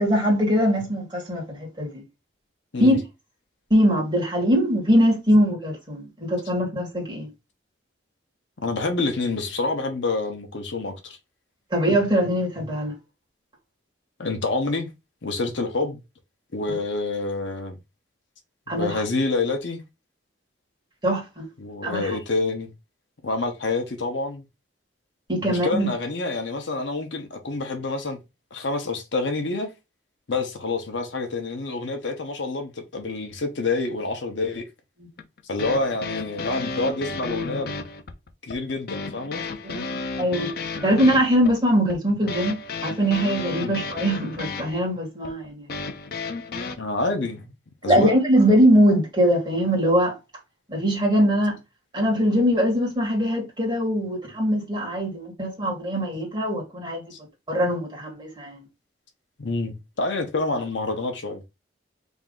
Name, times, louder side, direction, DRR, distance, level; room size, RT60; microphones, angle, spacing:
voice 1, 0.0-2.0 2.8-3.0 3.7-7.3 11.7-12.9 18.7-18.9 21.0-21.5 21.8-22.2 25.3-25.9 39.6-39.8 40.2-40.5 40.8-42.6 42.8-45.7 47.9-50.2 50.7-51.6 51.9-57.0 57.5-58.6, equal, 20° right, 1.9 m, -22 dB
voice 2, 8.6-11.2 14.2-14.9 15.2-16.0 16.5-17.8 18.7-19.8 21.6-22.7 23.2-24.4 25.4-28.2 28.5-29.7 30.3-34.7 35.5-37.8 38.4-39.5 43.6-43.8 46.8-47.5 47.8-48.1 57.1-57.2 59.4-61.4, left 3 dB, 65° left, 0.9 m, -27 dB
sound 1, 35.2-46.8, left 3 dB, 50° left, 0.5 m, -33 dB
3.5 x 2.6 x 3.7 m
head